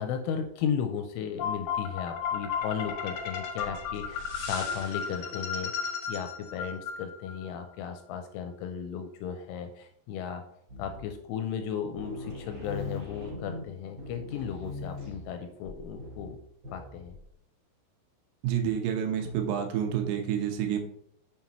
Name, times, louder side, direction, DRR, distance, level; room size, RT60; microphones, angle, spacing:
voice 1, 0.0-10.4 10.8-16.4 16.7-17.2, left 7 dB, 85° left, 6 dB, 2.9 m, -35 dB
sound 1, 1.4-7.5, left 6 dB, 65° left, 1.9 m, -34 dB
sound 2, 10.7-11.3 11.6-11.7 12.0-17.3, left 3 dB, 30° right, 3.0 m, -41 dB
voice 2, 18.4-20.8, right 9 dB, 85° right, 4 dB, 3.6 m, -29 dB
7.3 x 7.0 x 3.0 m, 0.71 s
omnidirectional pair, 5.9 m